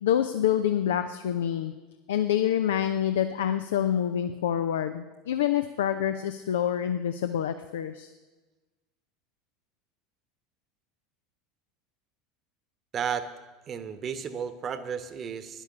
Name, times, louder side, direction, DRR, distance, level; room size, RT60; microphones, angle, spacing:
voice 1, 0.0-1.7 2.1-8.1, left 10 dB, 70° left, 9 dB, 0.6 m, -27 dB
voice 2, 12.9-13.3 13.7-15.6, right 7 dB, 35° right, 11 dB, 1.2 m, -33 dB
12.0 x 10.5 x 6.9 m, 1.2 s
figure-of-eight pair, 75°, 0 cm